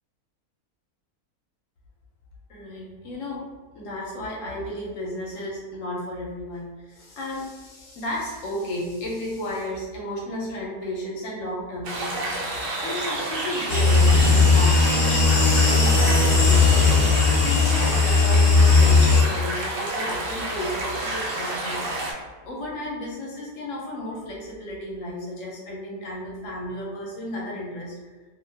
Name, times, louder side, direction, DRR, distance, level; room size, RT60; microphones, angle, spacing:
voice 1, 2.5-3.4 3.7-21.8 22.2-28.0, left 1 dB, 70° left, -3 dB, 0.9 m, -33 dB
sound 1, 11.8-22.1, right 2 dB, 85° right, 0.4 m, -30 dB
sound 2, 13.7-19.2, left 4 dB, 45° left, 0.8 m, -17 dB
2.6 x 2.2 x 3.2 m, 1.4 s
omnidirectional pair, 1.6 m